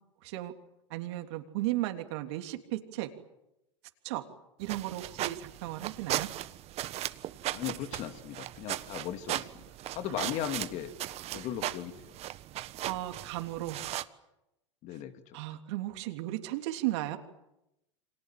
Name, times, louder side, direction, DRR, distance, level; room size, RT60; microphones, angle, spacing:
voice 1, 0.2-0.5 0.9-3.1 4.0-4.2 4.6-6.3 10.1-10.2 12.8-13.8 15.3-17.2, right 16 dB, 60° right, 5 dB, 3.3 m, -35 dB
sound 1, 4.6-14.0, right 14 dB, 40° right, 1.4 m, -37 dB
voice 2, 7.5-9.5 9.9-10.9 11.3-12.1 14.8-15.4, left 10 dB, 45° left, 8 dB, 2.7 m, -37 dB
29.5 x 25.5 x 7.7 m, 0.91 s
hypercardioid pair, 100°, 16 cm